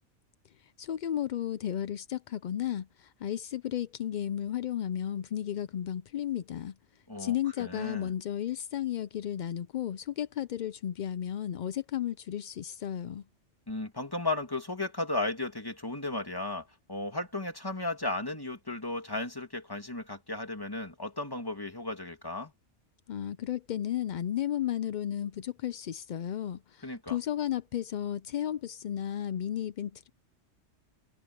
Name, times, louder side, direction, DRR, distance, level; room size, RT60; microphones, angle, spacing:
voice 1, 0.6-6.7 7.2-13.2 23.1-30.1, left 11 dB, 60° left, 0.5 m, -33 dB
voice 2, 7.1-8.1 13.7-22.5 26.8-27.2, left 2 dB, 20° left, 2.5 m, -35 dB
omnidirectional pair, 1.2 m